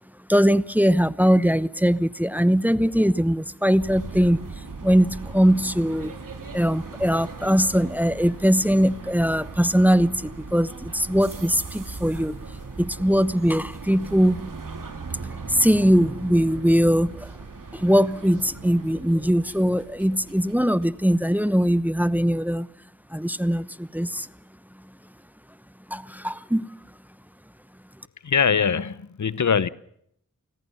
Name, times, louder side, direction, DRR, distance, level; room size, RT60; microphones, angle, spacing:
voice 1, 0.3-6.1 6.5-14.4 15.1-17.4 17.7-22.7 23.1-24.3 25.9-26.7, equal, 5° right, 0.9 m, -21 dB
sound 1, 3.8-21.5, right 4 dB, 75° right, 3.2 m, -39 dB
voice 2, 28.2-29.7, left 6 dB, 60° left, 0.9 m, -22 dB
28.5 x 20.5 x 6.8 m
wide cardioid pair, 60°, 32 cm